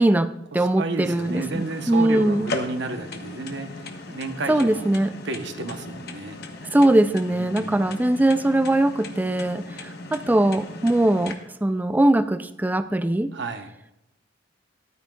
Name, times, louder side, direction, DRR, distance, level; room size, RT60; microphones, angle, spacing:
voice 1, 0.0-2.5 4.5-5.1 6.7-13.3, right 1 dB, 10° right, 12 dB, 0.3 m, -21 dB
voice 2, 0.5-4.9 5.2-6.4 7.3-7.9 13.3-13.7, right 3 dB, 65° right, 7 dB, 0.9 m, -32 dB
sound 1, 1.0-11.3, left 2 dB, 55° left, 1.0 m, -37 dB
13.5 x 11.5 x 2.3 m, 0.88 s
head